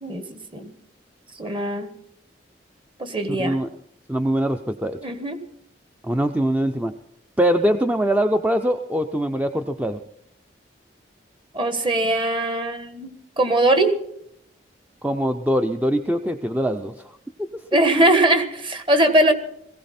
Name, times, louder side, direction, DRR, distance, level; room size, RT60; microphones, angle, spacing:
voice 1, 0.0-0.7 1.4-1.9 3.0-3.6 5.0-5.4 11.5-13.9 16.2-16.3 17.7-19.3, right 1 dB, 30° right, 9 dB, 1.4 m, -21 dB
voice 2, 3.3-3.7 4.1-5.0 6.0-6.9 7.4-10.0 15.0-17.6 17.9-18.1, equal, 10° right, 7 dB, 0.5 m, -23 dB
19.5 x 16.0 x 4.3 m, 0.76 s
head